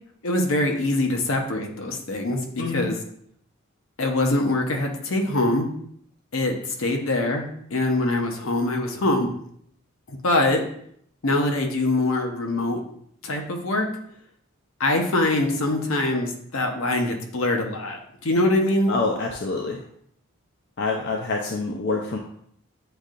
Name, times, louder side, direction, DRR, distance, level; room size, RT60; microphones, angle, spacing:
voice 1, 0.2-2.9 4.0-5.7 6.3-6.5 6.8-9.3 10.1-10.6 11.2-12.8 13.2-13.9 14.8-18.9, left 2 dB, 75° left, 3 dB, 0.8 m, -23 dB
voice 2, 2.6-2.9 18.9-19.8 20.8-22.2, left 3 dB, 55° left, 1 dB, 0.4 m, -26 dB
7.8 x 2.7 x 2.4 m, 0.66 s
head